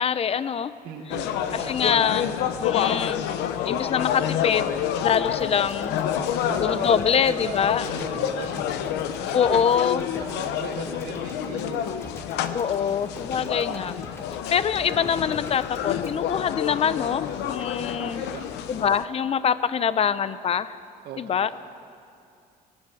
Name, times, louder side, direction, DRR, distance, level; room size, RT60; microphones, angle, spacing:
voice 1, 0.0-0.7 1.5-2.2 2.6-3.3 3.6-4.7 5.0-6.0 6.6-7.9 9.3-10.1 12.5-13.9 14.5-18.2 18.7-20.8 21.2-21.5, left 7 dB, 35° left, 15 dB, 0.7 m, -24 dB
voice 2, 0.8-2.8 6.2-9.6 10.2-12.0 13.4-13.8 17.8-18.6 21.0-21.4, right 6 dB, 70° right, -2 dB, 2.0 m, -39 dB
sound 1, 1.1-19.0, left 9 dB, 90° left, 0.9 m, -29 dB
sound 2, 5.1-17.3, left 1 dB, 15° left, 1.6 m, -44 dB
19.5 x 18.5 x 7.6 m, 2.4 s
cardioid pair, 110°, 17 cm